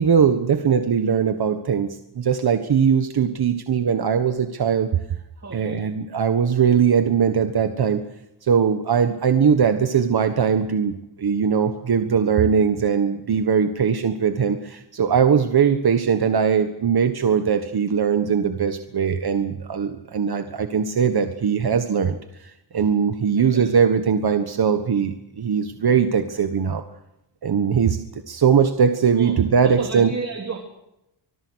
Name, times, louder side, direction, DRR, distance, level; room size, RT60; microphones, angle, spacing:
voice 1, 0.0-4.9 5.5-8.0 8.4-26.8 27.4-30.1, right 7 dB, 55° right, 8 dB, 1.5 m, -20 dB
voice 2, 5.4-5.8 15.6-15.7 23.4-23.7 29.1-30.6, right 4 dB, 35° right, 2 dB, 3.2 m, -33 dB
25.5 x 21.0 x 6.4 m, 0.87 s
wide cardioid pair, 140°, 46 cm